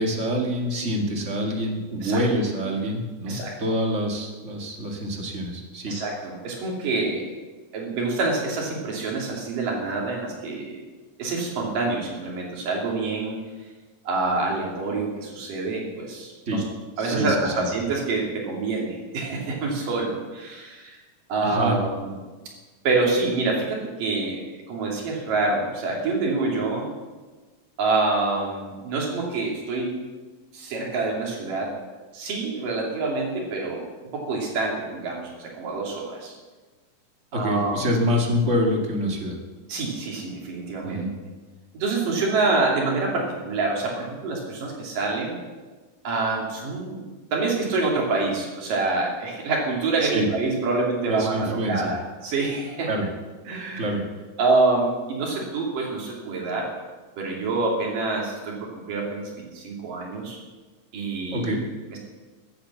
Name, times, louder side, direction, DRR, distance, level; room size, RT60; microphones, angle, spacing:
voice 1, 0.0-6.0 16.5-16.6 17.0-17.5 21.4-21.8 37.3-39.4 40.8-41.1 50.0-50.2 51.1-51.9 52.9-53.1 53.8-54.0 61.3-61.6, equal, 30° right, 1 dB, 1.4 m, -26 dB
voice 2, 5.9-7.3 7.7-10.8 11.2-13.4 14.1-16.6 17.0-21.0 21.3-22.1 22.8-24.4 24.7-26.9 27.8-29.9 30.5-31.7 32.1-33.9 34.1-36.3 37.3-37.9 39.7-41.0 41.7-45.4 46.0-47.0 47.3-52.9 53.5-53.9 54.4-56.7 57.2-60.4 60.9-61.5 61.9-62.0, right 3 dB, 75° right, -2 dB, 4.3 m, -26 dB
14.5 x 8.7 x 7.1 m, 1.3 s
omnidirectional pair, 3.9 m